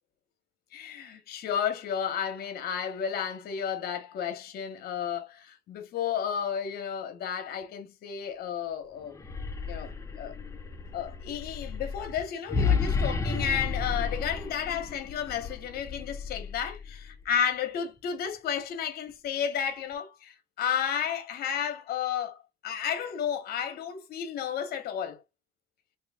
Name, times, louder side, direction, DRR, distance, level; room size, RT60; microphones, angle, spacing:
voice 1, 0.7-9.2 9.6-9.9 10.2-10.3 10.9-25.2, left 8 dB, 65° left, 1.0 m, -32 dB
sound 1, 9.1-17.2, left 5 dB, 20° left, 0.6 m, -32 dB
3.0 x 2.8 x 3.6 m
cardioid pair, 110°, 17 cm